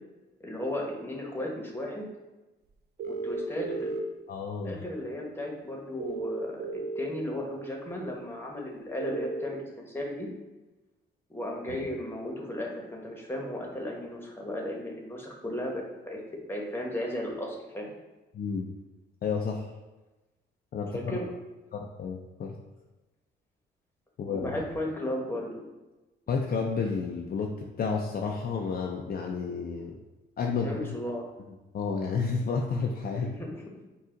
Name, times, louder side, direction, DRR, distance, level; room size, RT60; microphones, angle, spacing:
voice 1, 0.4-2.1 3.1-3.9 4.6-10.3 11.3-16.2 16.5-17.9 20.9-21.3 24.3-25.6 30.5-31.3 33.1-33.6, left 1 dB, 10° left, 0 dB, 1.1 m, -35 dB
sound 1, 3.0-4.0 6.0-7.0 9.0-9.4, right 4 dB, 55° right, 0.5 m, -34 dB
voice 2, 4.3-4.8 18.3-18.6 19.2-19.7 20.7-21.2 21.7-22.5 24.2-24.4 26.3-29.9 30.4-30.7 31.7-33.3, left 5 dB, 50° left, 1 dB, 0.5 m, -31 dB
5.5 x 2.4 x 3.8 m, 1.1 s
cardioid pair, 90°, 20 cm